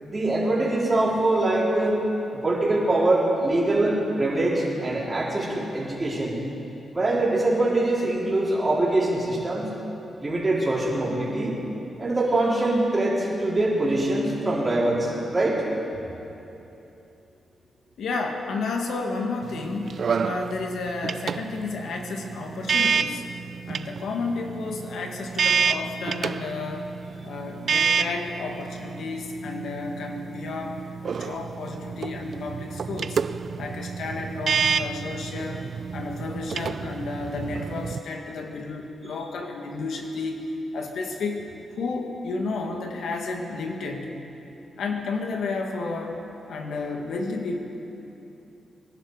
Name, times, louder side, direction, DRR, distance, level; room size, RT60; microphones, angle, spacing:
voice 1, 0.0-2.0 2.3-6.4 6.9-9.7 10.2-11.6 12.0-15.6, right 2 dB, 30° right, -5 dB, 4.1 m, -23 dB
voice 2, 18.0-23.3 23.7-26.9 27.2-33.2 33.6-35.7 35.9-40.4 40.7-41.4 41.8-44.2 44.8-46.2 46.5-47.6, left 3 dB, 80° left, 2 dB, 1.8 m, -32 dB
sound 1, 19.4-38.0, right 6 dB, 60° right, 0.4 m, -29 dB
24.0 x 12.0 x 4.9 m, 2.9 s
cardioid pair, 90°, 0 cm